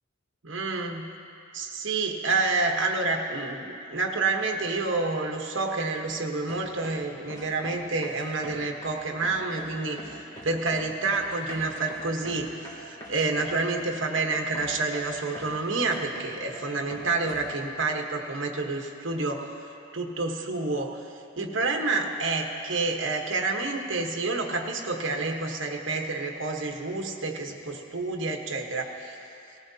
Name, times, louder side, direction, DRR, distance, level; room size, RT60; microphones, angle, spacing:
voice 1, 0.4-1.1 1.5-10.0 10.4-12.5 12.8-19.5 19.9-21.0 21.4-29.2, right 3 dB, 70° right, 2 dB, 1.1 m, -28 dB
sound 1, 6.0-6.2 6.5-7.0 7.3-7.8 8.0-9.0 9.2-9.7 10.0-10.9 11.1-13.8 14.2-14.3 14.5-15.5 15.8-16.6 16.9-17.5, right 1 dB, 20° left, 2.7 m, -43 dB
18.5 x 16.0 x 2.8 m, 2.6 s
head